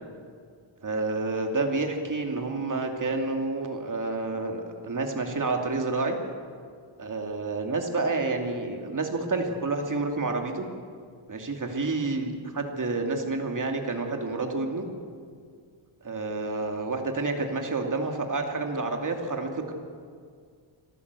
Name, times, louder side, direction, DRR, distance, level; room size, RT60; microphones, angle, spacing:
voice 1, 0.8-6.2 7.0-10.7 11.3-14.8 16.0-19.7, right 3 dB, 40° right, 3 dB, 2.6 m, -29 dB
26.0 x 14.5 x 8.2 m, 2.1 s
wide cardioid pair, 150°, 49 cm